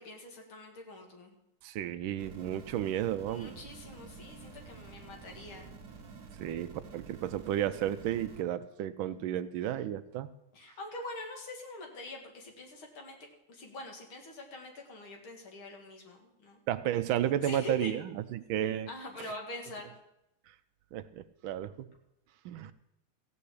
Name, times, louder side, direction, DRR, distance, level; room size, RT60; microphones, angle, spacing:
voice 1, 0.0-1.3 3.3-5.7 10.5-13.2 13.5-16.6 17.4-17.9 18.9-19.9, left 2 dB, 70° left, 2 dB, 2.8 m, -44 dB
voice 2, 1.6-3.6 6.4-10.3 16.7-18.9 19.2-19.3 20.5-20.6 20.9-21.9 22.4-22.7, right 11 dB, 75° right, 13 dB, 1.3 m, -33 dB
sound 1, 2.2-8.4, right 4 dB, 50° right, 1.6 m, -50 dB
15.0 x 5.6 x 8.4 m, 0.85 s
omnidirectional pair, 2.4 m